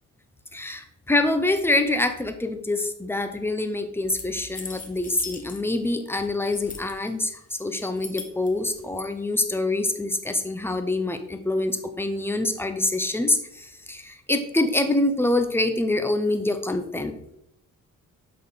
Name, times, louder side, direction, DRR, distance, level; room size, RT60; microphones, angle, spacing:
voice 1, 0.5-17.1, left 2 dB, 5° left, 8 dB, 0.7 m, -25 dB
sound 1, 4.1-5.9 6.2-7.1 7.5-9.1, left 4 dB, 25° left, 1.1 m, -40 dB
6.5 x 5.2 x 4.0 m, 0.76 s
cardioid pair, 100°, 32 cm